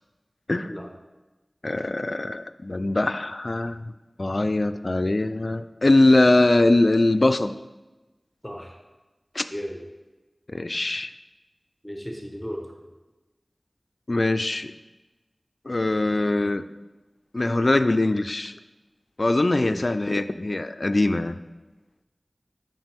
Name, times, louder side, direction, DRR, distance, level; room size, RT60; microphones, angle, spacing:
voice 1, 1.6-3.8 4.2-7.5 9.4-9.5 10.5-11.1 14.1-14.7 15.7-16.6 17.3-18.5 19.2-21.4, left 2 dB, 55° left, 11 dB, 0.3 m, -22 dB
voice 2, 8.4-8.7 9.5-9.8 11.8-12.7 19.6-19.8, equal, ahead, 1 dB, 1.0 m, -35 dB
7.3 x 5.6 x 3.5 m, 1.1 s
wide cardioid pair, 45°, 0 cm